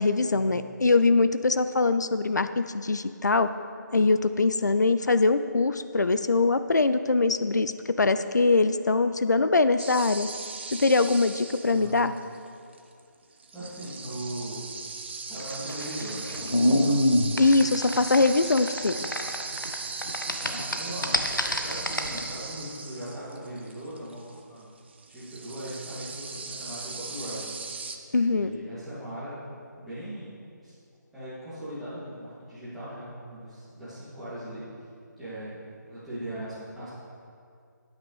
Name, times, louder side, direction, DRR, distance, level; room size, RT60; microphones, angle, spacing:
voice 1, 0.0-3.5 3.9-7.7 8.0-10.3 10.7-12.1 17.4-19.0 28.1-28.5, left 3 dB, 65° left, 11 dB, 0.5 m, -22 dB
sound 1, 9.8-12.4 12.7-13.0 13.4-28.0, right 4 dB, 35° right, 0.6 m, -38 dB
voice 2, 13.5-14.6 15.3-17.0 20.4-21.2 21.6-24.7 25.1-27.6 28.2-29.4 29.7-30.3 30.6-30.7 31.1-34.6 35.2-35.6 35.9-36.9, right 1 dB, ahead, -16 dB, 2.6 m, -39 dB
sound 2, 15.4-19.8 20.0-22.2, left 1 dB, 85° left, 1.0 m, -25 dB
14.5 x 9.0 x 3.3 m, 2.3 s
figure-of-eight pair, 155°, 10 cm